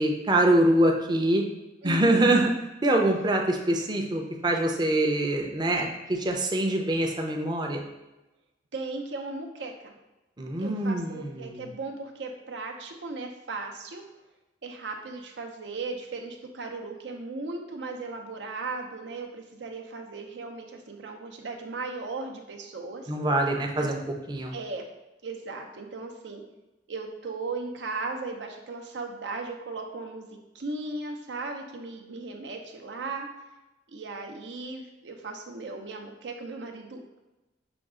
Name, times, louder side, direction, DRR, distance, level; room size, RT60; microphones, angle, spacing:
voice 1, 0.0-1.4 1.8-2.5 2.8-7.8 10.4-11.7 23.1-24.0 24.3-24.6, right 1 dB, 25° right, 2 dB, 0.5 m, -24 dB
voice 2, 1.8-2.4 8.7-9.9 10.6-14.0 14.6-23.1 23.8-23.9 24.5-24.9 25.2-26.4 26.9-30.3 30.5-33.3 33.9-37.2, right 3 dB, 80° right, 3 dB, 0.6 m, -37 dB
5.9 x 2.3 x 3.7 m, 1.0 s
head